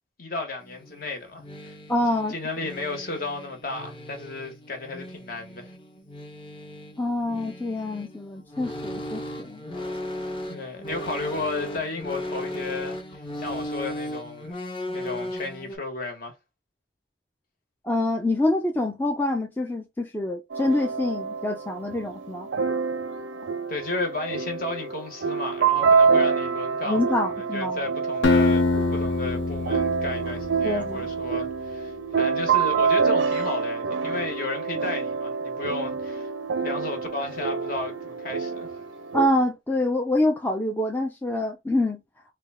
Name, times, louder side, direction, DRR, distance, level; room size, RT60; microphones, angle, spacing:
voice 1, 0.2-1.7 2.3-5.7 10.5-14.5 14.9-16.3 23.7-27.0 27.4-28.6 28.9-36.3 36.6-38.7, left 3 dB, 50° left, 1.2 m, -33 dB
sound 1, 0.6-15.8, left 1 dB, 30° left, 1.0 m, -37 dB
voice 2, 1.9-2.4 7.0-9.6 17.8-22.5 26.8-27.8 30.6-31.1 39.1-42.0, left 1 dB, 10° left, 0.4 m, -26 dB
sound 2, 20.5-39.3, right 5 dB, 85° right, 0.5 m, -26 dB
Acoustic guitar, 28.2-31.2, left 3 dB, 90° left, 0.7 m, -24 dB
3.4 x 2.3 x 3.4 m
head